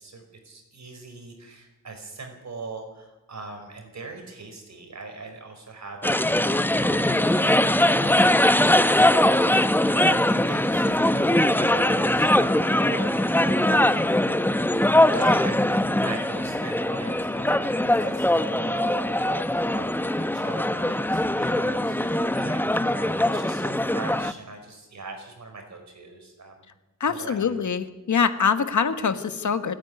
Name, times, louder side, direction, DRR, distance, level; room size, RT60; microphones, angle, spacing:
voice 1, 0.0-9.0 9.4-12.5 12.7-14.2 15.1-26.7 27.1-27.6, right 3 dB, 55° right, 4 dB, 5.1 m, -41 dB
sound 1, 6.0-24.3, left 1 dB, 5° left, 0.8 m, -21 dB
voice 2, 27.0-29.7, left 6 dB, 60° left, 10 dB, 1.5 m, -24 dB
27.5 x 10.0 x 9.5 m, 1.0 s
cardioid pair, 90°, 33 cm